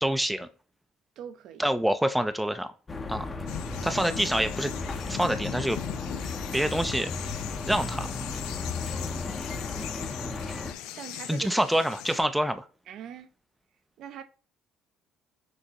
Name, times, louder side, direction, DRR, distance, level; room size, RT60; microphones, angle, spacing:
voice 1, 0.0-0.5 1.6-2.7 3.1-3.3 3.8-4.7 5.1-5.8 6.5-7.1 7.7-8.1 11.3-12.7, right 1 dB, 5° right, 0.4 m, -26 dB
voice 2, 1.2-1.7 3.8-4.0 11.0-11.6 12.9-13.3 14.0-14.2, right 9 dB, 65° right, 0.6 m, -42 dB
sound 1, 2.9-10.7, left 3 dB, 25° left, 0.7 m, -35 dB
sound 2, 3.5-12.2, left 12 dB, 90° left, 0.4 m, -40 dB
sound 3, 5.0-9.2, left 6 dB, 60° left, 2.1 m, -55 dB
6.2 x 2.6 x 2.9 m
cardioid pair, 110°, 0 cm